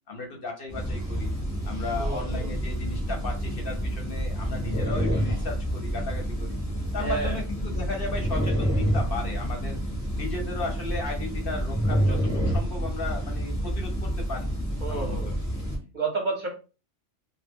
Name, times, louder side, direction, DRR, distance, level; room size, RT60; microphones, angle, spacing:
voice 1, 0.1-1.3 1.7-6.6 6.9-9.8 10.1-14.5 14.9-15.3, left 3 dB, 55° left, 2 dB, 0.7 m, -35 dB
sound 1, 0.7-15.8, equal, 20° left, 0.6 m, -28 dB
voice 2, 2.0-2.5 7.0-7.4 14.8-15.4 15.9-16.5, right 4 dB, 50° right, -1 dB, 0.6 m, -30 dB
2.1 x 2.0 x 3.5 m, 0.33 s
omnidirectional pair, 1.3 m